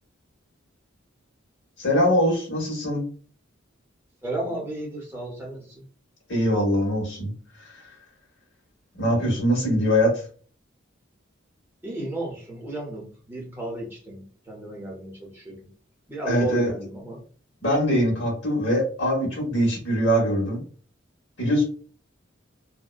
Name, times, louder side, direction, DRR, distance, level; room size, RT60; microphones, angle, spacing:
voice 1, 1.8-3.0 6.3-7.3 7.6-7.7 9.0-10.1 16.2-16.7 17.6-20.6 21.4-21.7, equal, 60° left, -1 dB, 1.1 m, -22 dB
voice 2, 4.2-5.8 11.8-15.7 16.1-17.2, right 1 dB, 10° right, -2 dB, 0.7 m, -34 dB
2.6 x 2.1 x 2.3 m, 0.42 s
head